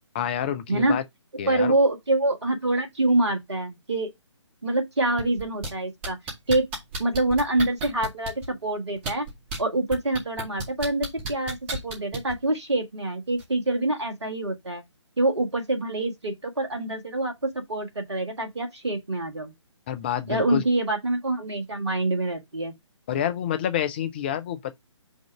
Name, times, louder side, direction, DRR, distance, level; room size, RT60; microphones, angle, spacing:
voice 1, 0.1-1.0 1.4-1.7 19.9-20.6 23.1-24.7, left 10 dB, 20° left, 0.5 m, -28 dB
voice 2, 0.7-1.0 1.5-4.1 4.6-6.2 6.5-6.7 7.0-9.3 9.6-11.6 11.8-14.8 15.2-19.5 20.3-22.8, right 2 dB, 65° right, 1.7 m, -25 dB
sound 1, 5.2-5.7 6.0-8.5 9.0-9.6 9.9-12.3 13.4-13.5, right 2 dB, 25° right, 2.0 m, -32 dB
5.4 x 3.7 x 4.7 m
figure-of-eight pair, 140°, 16 cm